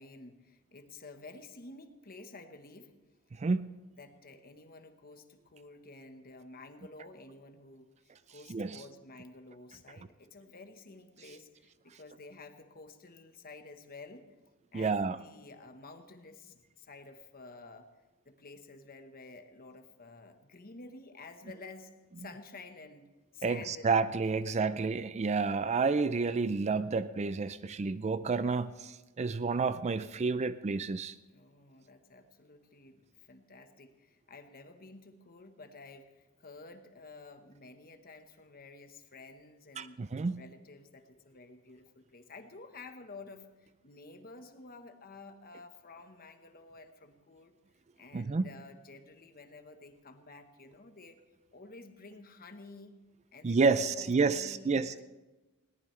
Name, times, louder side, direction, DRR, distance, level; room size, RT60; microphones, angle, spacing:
voice 1, 0.0-2.9 4.0-7.9 8.3-14.2 14.7-17.9 18.2-23.9 24.4-24.8 31.3-47.5 48.0-51.2 51.5-52.9 53.3-55.0, left 3 dB, 45° left, 7 dB, 1.2 m, -51 dB
voice 2, 14.7-15.2 23.4-31.1 39.8-40.4 48.1-48.5 53.4-55.0, right 4 dB, 30° right, 14 dB, 0.4 m, -30 dB
20.5 x 18.5 x 3.3 m, 1.1 s
head